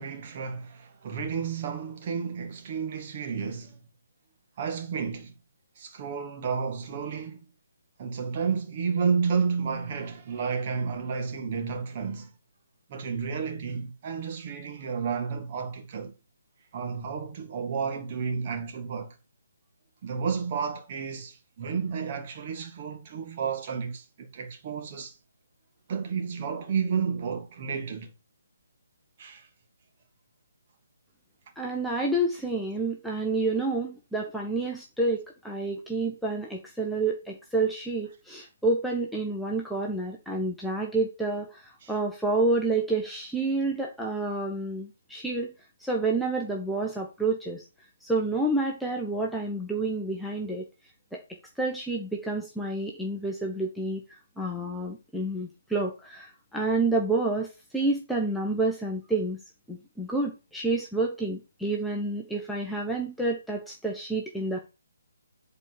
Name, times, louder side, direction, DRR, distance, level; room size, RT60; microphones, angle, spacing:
voice 1, 0.0-3.8 4.6-5.3 5.8-7.5 8.0-12.3 12.9-16.1 16.7-19.1 20.0-25.1 25.9-28.1 29.2-29.5 41.8-41.9, right 6 dB, 30° right, 2.0 m, -31 dB
voice 2, 31.6-45.5 45.8-47.6 48.0-50.6 51.1-51.2 51.6-54.0 54.4-57.5 57.7-59.4 59.7-64.6, right 2 dB, ahead, 1.2 m, -29 dB
8.3 x 4.7 x 7.3 m
figure-of-eight pair, 140°, 0 cm